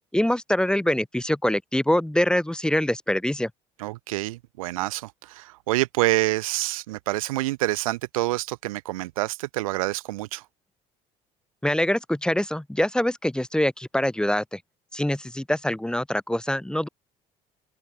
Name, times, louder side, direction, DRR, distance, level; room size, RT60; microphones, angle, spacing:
voice 1, 0.1-3.5 11.6-14.6 14.9-16.9, left 1 dB, 5° left, 1.2 m, -24 dB
voice 2, 3.8-10.4, right 18 dB, 85° right, 0.8 m, -27 dB
open air
hypercardioid pair, 65°, 17 cm